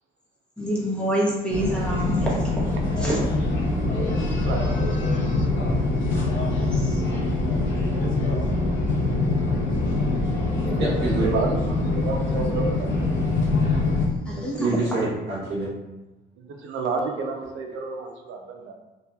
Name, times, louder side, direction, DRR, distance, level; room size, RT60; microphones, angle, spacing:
voice 1, 0.6-2.7 3.0-3.2 6.5-7.0 10.2-10.4 14.3-14.8, equal, 5° left, -5 dB, 0.7 m, -27 dB
sound 1, 1.5-14.1, left 2 dB, 75° left, 0.6 m, -24 dB
voice 2, 4.4-5.0 11.2-11.6 11.9-13.2 16.4-18.7, right 4 dB, 80° right, 3 dB, 0.5 m, -30 dB
voice 3, 10.8-11.3 14.3-15.7, right 3 dB, 60° right, -8 dB, 0.8 m, -26 dB
2.8 x 2.2 x 2.2 m, 1.1 s
cardioid pair, 90°, 20 cm